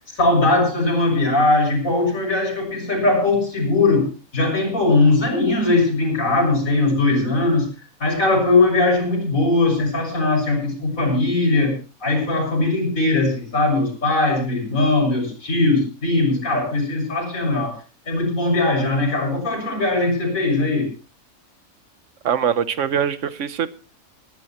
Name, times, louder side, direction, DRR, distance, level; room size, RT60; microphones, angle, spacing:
voice 1, 0.1-4.1 4.3-7.7 8.0-11.7 12.0-17.8 18.1-20.9, left 2 dB, 75° left, 1 dB, 7.5 m, -20 dB
voice 2, 22.2-23.7, right 8 dB, 65° right, 13 dB, 1.3 m, -22 dB
22.0 x 14.5 x 3.0 m, 0.35 s
omnidirectional pair, 1.4 m